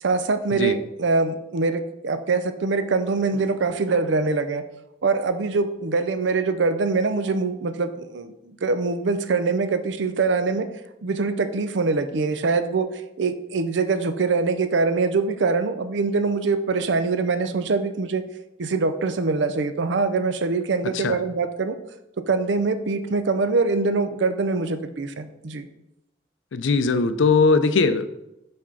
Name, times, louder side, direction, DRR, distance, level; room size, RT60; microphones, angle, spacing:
voice 1, 0.0-4.6 5.0-8.3 8.6-10.7 11.0-18.2 18.6-21.8 22.3-25.7, right 4 dB, 70° right, 10 dB, 0.5 m, -23 dB
voice 2, 20.8-21.2 26.5-28.1, left 4 dB, 80° left, 12 dB, 0.5 m, -20 dB
6.0 x 4.3 x 4.8 m, 0.90 s
head